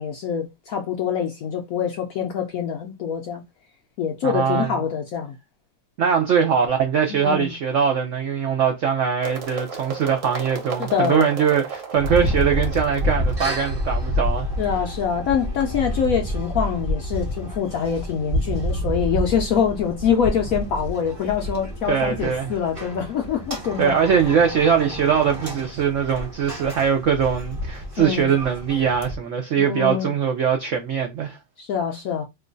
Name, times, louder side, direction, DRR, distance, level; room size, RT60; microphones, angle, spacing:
voice 1, 0.0-3.4 4.0-5.4 7.1-7.5 10.8-11.3 14.6-24.0 28.0-28.3 29.6-30.1 31.6-32.2, left 7 dB, 75° left, 0.8 m, -25 dB
voice 2, 4.2-4.7 6.0-14.5 21.9-22.5 23.8-31.4, right 7 dB, 90° right, 0.6 m, -21 dB
sound 1, 9.2-15.1, right 5 dB, 50° right, 1.1 m, -35 dB
sound 2, 12.0-29.2, equal, 25° right, 0.7 m, -29 dB
3.0 x 2.2 x 3.7 m
omnidirectional pair, 2.0 m